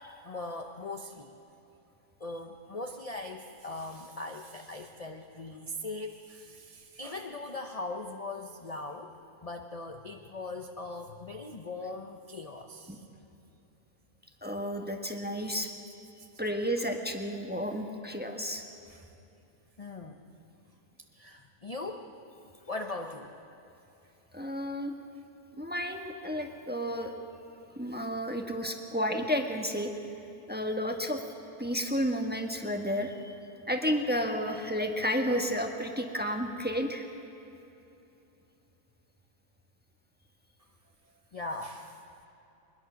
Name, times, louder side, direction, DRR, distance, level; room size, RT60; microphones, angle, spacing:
voice 1, 0.2-1.3 2.2-9.1 9.4-13.0 18.9-19.1 19.8-20.2 21.1-22.1 22.6-23.3 41.3-42.0, left 2 dB, 30° left, 3 dB, 0.7 m, -40 dB
voice 2, 14.4-15.7 16.4-18.6 24.3-24.9 25.6-27.1 27.7-29.9 30.5-31.2 31.6-33.3 33.7-37.0, equal, 5° right, 3 dB, 1.2 m, -31 dB
22.0 x 21.5 x 6.4 m, 2.9 s
omnidirectional pair, 1.7 m